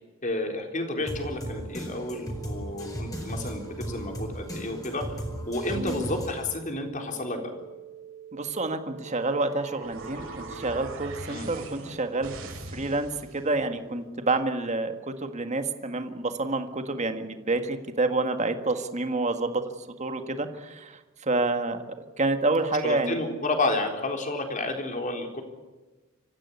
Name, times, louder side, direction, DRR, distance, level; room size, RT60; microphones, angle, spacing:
voice 1, 0.2-5.2 5.5-7.5 11.3-11.5 22.8-25.4, left 2 dB, 35° left, 4 dB, 3.9 m, -31 dB
sound 1, 0.6-10.6, right 9 dB, 15° right, 1.7 m, -46 dB
sound 2, 1.1-6.6, equal, 15° left, 4.9 m, -36 dB
voice 2, 8.3-12.3 12.7-19.6 20.0-23.2, right 2 dB, 35° right, 8 dB, 1.7 m, -28 dB
sound 3, 9.0-13.5, right 2 dB, 65° right, 4.6 m, -41 dB
25.5 x 15.0 x 9.7 m, 1.2 s
head